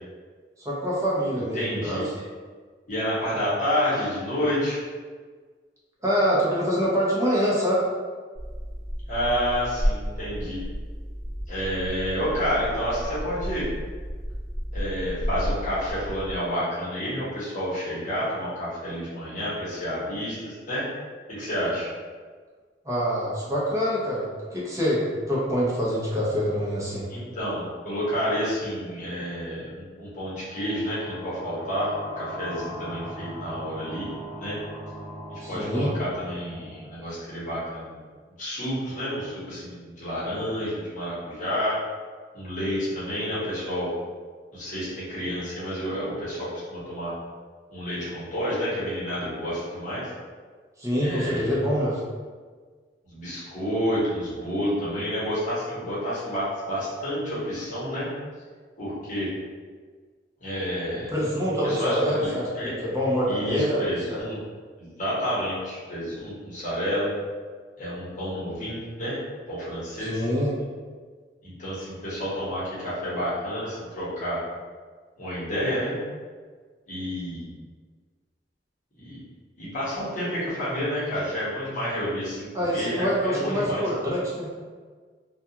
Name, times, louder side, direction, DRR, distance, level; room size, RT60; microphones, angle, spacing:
voice 1, 0.6-2.0 6.0-7.8 22.8-27.1 35.4-35.9 50.8-52.0 61.1-64.2 70.0-70.6 82.5-84.5, equal, 15° right, -7 dB, 0.6 m, -25 dB
voice 2, 1.5-2.0 2.9-4.8 9.1-10.6 11.5-13.7 14.7-20.8 21.3-21.9 27.1-34.1 34.4-34.6 35.3-38.0 38.4-41.8 42.3-43.9 44.5-47.1 47.7-50.1 51.0-51.6 53.0-58.1 58.8-59.3 60.4-61.1 61.6-62.7 63.3-64.4 64.8-67.1 67.8-69.2 69.5-70.2 71.4-74.4 75.2-76.0 76.9-77.4 79.0-79.2 79.6-83.8, equal, 45° left, -9 dB, 1.0 m, -29 dB
sound 1, 8.3-16.4, equal, 45° right, 1.2 m, -32 dB
sound 2, 30.2-37.7, equal, 75° left, 0.7 m, -40 dB
2.3 x 2.3 x 2.8 m, 1.5 s
head